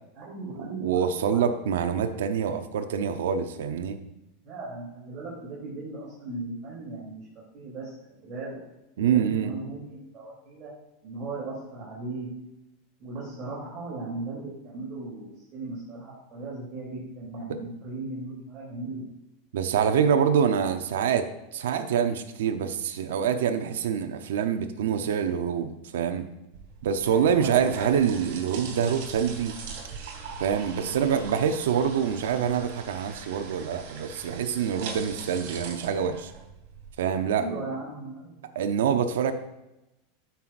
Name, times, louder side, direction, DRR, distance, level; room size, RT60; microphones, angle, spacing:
voice 1, 0.1-1.4 4.4-7.3 7.5-8.6 9.0-10.7 11.0-12.3 13.0-19.0 27.3-27.6 37.3-38.5, right 2 dB, 40° right, -7 dB, 3.1 m, -37 dB
voice 2, 0.8-4.0 9.0-9.5 19.5-26.3 26.8-29.5 30.4-36.3 37.0-37.5 38.5-39.3, right 7 dB, 85° right, 8 dB, 0.7 m, -25 dB
sound 1, 26.5-36.9, right 5 dB, 65° right, 2.7 m, -41 dB
13.0 x 5.7 x 2.6 m, 0.92 s
supercardioid pair, 135°, 0 cm